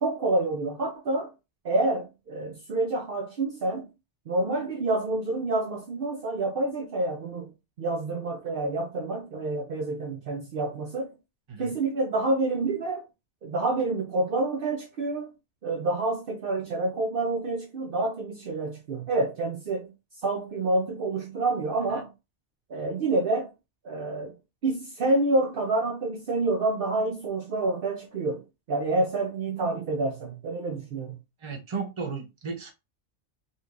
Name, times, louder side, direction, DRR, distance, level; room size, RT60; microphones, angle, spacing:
voice 1, 0.0-1.3 1.6-3.9 4.3-7.5 7.8-11.1 11.6-13.0 13.4-15.3 15.6-19.9 20.2-22.1 22.7-23.5 23.8-24.3 24.6-31.2, right 2 dB, 60° right, 0.8 m, -28 dB
voice 2, 31.4-32.7, right 5 dB, 30° right, 0.9 m, -34 dB
4.0 x 3.0 x 2.5 m
omnidirectional pair, 1.1 m